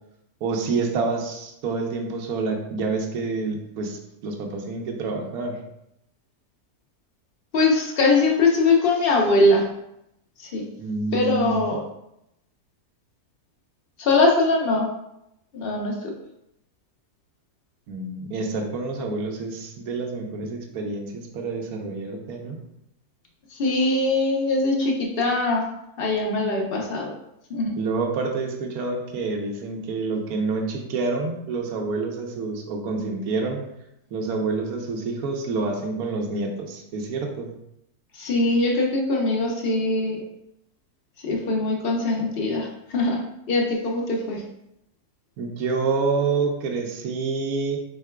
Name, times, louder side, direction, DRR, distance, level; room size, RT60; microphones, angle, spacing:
voice 1, 0.4-5.6 10.8-11.6 17.9-22.6 27.8-33.6 34.1-37.5 45.4-47.8, right 4 dB, 75° right, 2 dB, 1.2 m, -28 dB
voice 2, 7.5-9.6 10.5-10.6 11.1-11.8 14.0-14.9 15.5-16.1 23.5-25.6 26.0-27.1 27.5-27.7 38.2-40.2 41.2-43.2 43.5-44.4, left 2 dB, 45° left, 0 dB, 0.8 m, -22 dB
4.7 x 4.6 x 2.2 m, 0.82 s
omnidirectional pair, 1.6 m